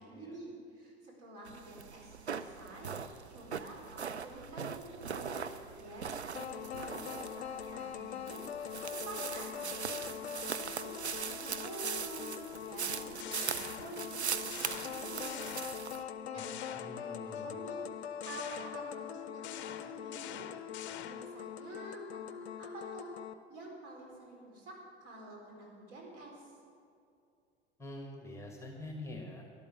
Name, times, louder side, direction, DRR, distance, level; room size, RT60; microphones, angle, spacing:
voice 1, 0.0-4.7 5.0-10.9 11.2-12.3 12.6-15.6 16.3-16.6 16.9-20.5 20.7-23.1 23.5-26.5, right 1 dB, 45° right, -2 dB, 4.4 m, -49 dB
sound 1, 1.5-16.0, right 6 dB, 85° right, 0.6 m, -41 dB
sound 2, 6.3-23.3, left 8 dB, 75° left, 0.6 m, -43 dB
sound 3, 12.9-14.2 14.5-16.1 16.4-17.4 18.2-21.4, left 11 dB, 35° left, 0.7 m, -47 dB
voice 2, 16.8-17.5 27.8-29.4, left 1 dB, 10° left, 1 dB, 1.6 m, -45 dB
12.5 x 12.0 x 6.4 m, 2.5 s
figure-of-eight pair, 75°, 33 cm